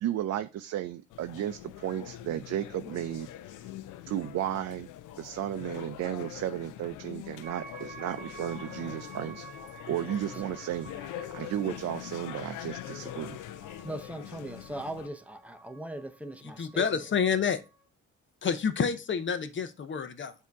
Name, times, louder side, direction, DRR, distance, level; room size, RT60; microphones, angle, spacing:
voice 1, 0.0-3.3 4.1-4.9 5.2-9.5 9.9-13.4, right 11 dB, 60° right, 0.5 m, -34 dB
sound 1, 1.1-15.1, left 12 dB, 85° left, 0.5 m, -43 dB
sound 2, 7.4-17.9, right 3 dB, 30° right, 1.8 m, -50 dB
voice 2, 13.8-17.1, right 1 dB, 5° right, 0.7 m, -39 dB
voice 3, 16.6-17.6 18.4-20.3, left 6 dB, 40° left, 0.7 m, -28 dB
7.3 x 2.8 x 4.6 m
cardioid pair, 90°, 30 cm